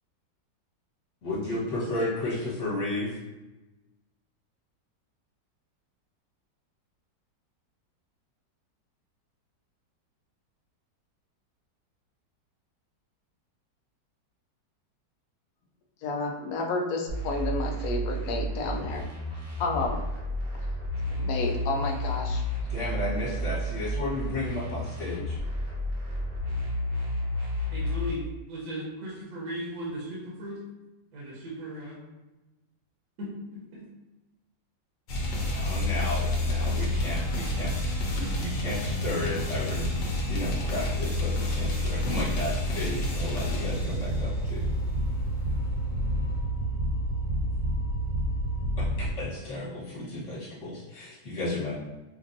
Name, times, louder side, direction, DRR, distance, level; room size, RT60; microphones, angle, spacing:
voice 1, 1.2-3.2 22.6-25.4 35.5-37.7 38.1-40.0 40.3-44.7 48.8-51.7, left 2 dB, 45° left, -8 dB, 1.7 m, -33 dB
voice 2, 16.0-19.0 19.6-20.0 21.2-22.4, left 3 dB, 65° left, 1 dB, 0.9 m, -30 dB
dnb bass, 17.1-28.1, equal, 75° right, 1.6 m, -31 dB
voice 3, 27.7-30.6 31.1-32.0 33.2-33.8, right 1 dB, 60° right, -5 dB, 1.4 m, -37 dB
sound 1, 35.1-49.1, left 1 dB, 85° left, 1.4 m, -29 dB
5.2 x 2.5 x 2.6 m, 1.0 s
omnidirectional pair, 1.9 m